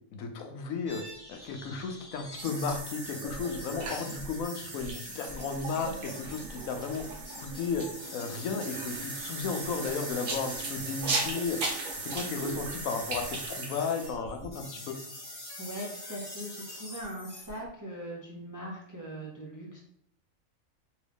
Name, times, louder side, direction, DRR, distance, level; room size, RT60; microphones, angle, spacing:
voice 1, 0.1-1.0 1.3-7.0 7.4-7.9 8.1-11.6 11.9-15.0, left 5 dB, 80° left, 5 dB, 1.0 m, -34 dB
sound 1, 0.9-17.7, left 1 dB, 25° left, 0.5 m, -45 dB
sound 2, 2.4-14.1, right 3 dB, 70° right, 1.2 m, -37 dB
voice 2, 15.6-19.8, equal, 20° right, -3 dB, 0.6 m, -40 dB
3.6 x 3.0 x 3.4 m, 0.67 s
omnidirectional pair, 1.5 m